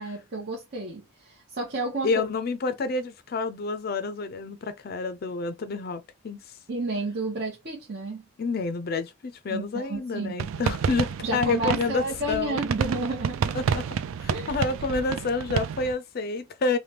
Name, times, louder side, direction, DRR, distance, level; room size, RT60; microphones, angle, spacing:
voice 1, 0.0-2.1 6.7-8.2 9.5-10.3 11.2-13.6 14.3-14.6, right 2 dB, 50° right, 0.8 m, -31 dB
voice 2, 2.0-6.4 8.4-12.6 13.5-13.8 14.2-16.8, left 4 dB, 45° left, 0.4 m, -29 dB
sound 1, 10.4-15.9, right 7 dB, 75° right, 0.3 m, -29 dB
3.3 x 2.1 x 2.8 m
head